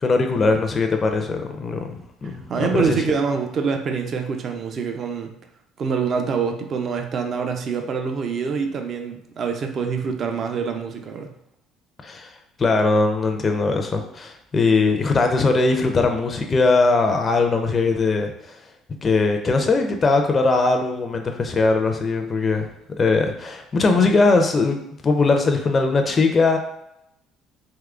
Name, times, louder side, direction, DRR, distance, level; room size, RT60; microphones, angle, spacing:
voice 1, 0.0-3.0 12.0-12.3 12.6-18.6 19.0-22.7 23.0-26.6, left 3 dB, 35° left, 4 dB, 0.4 m, -20 dB
voice 2, 2.2-5.4 5.8-11.3, right 5 dB, 50° right, 5 dB, 0.4 m, -25 dB
3.6 x 2.9 x 2.3 m, 0.81 s
supercardioid pair, 70°, 0 cm